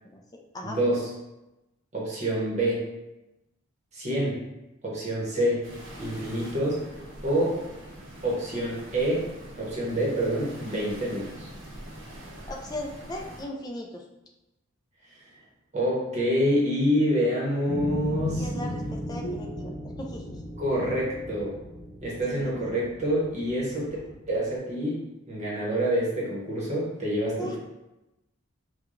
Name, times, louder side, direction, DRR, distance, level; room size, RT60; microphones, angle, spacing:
voice 1, 0.6-1.1 1.9-2.8 3.9-4.4 4.8-5.6 6.0-6.8 7.2-7.6 8.2-9.3 9.6-11.5 15.7-18.4 20.6-21.6 22.0-23.9 24.3-25.0 25.3-27.6, equal, 30° right, -5 dB, 0.9 m, -27 dB
sound 1, 5.6-13.4, right 1 dB, 70° right, 0.8 m, -44 dB
voice 2, 12.5-14.0 18.4-20.4 22.3-22.7 27.4-27.6, equal, 20° left, 1 dB, 0.3 m, -38 dB
sound 2, 17.7-24.2, left 1 dB, 45° left, 0.9 m, -35 dB
4.7 x 2.2 x 2.5 m, 0.97 s
head